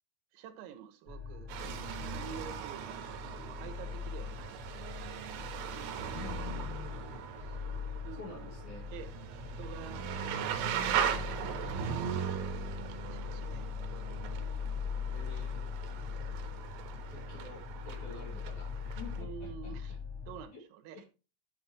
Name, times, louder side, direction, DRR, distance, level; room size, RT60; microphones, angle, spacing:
voice 1, 0.3-4.6 5.0-6.0 8.0-8.6 8.9-9.1 9.4-13.7 17.0-17.1 19.2-20.0 20.3-21.1, right 9 dB, 90° right, 7 dB, 4.0 m, -49 dB
sound 1, 1.1-20.5, left 5 dB, 25° left, 5.8 m, -41 dB
sound 2, 1.5-19.2, right 8 dB, 75° right, 3.2 m, -39 dB
voice 2, 6.1-7.6 8.2-8.9 15.1-15.8 17.1-20.0 20.5-20.6 20.9-21.1, left 4 dB, 50° left, -1 dB, 2.7 m, -49 dB
11.5 x 7.0 x 3.0 m, 0.32 s
omnidirectional pair, 5.9 m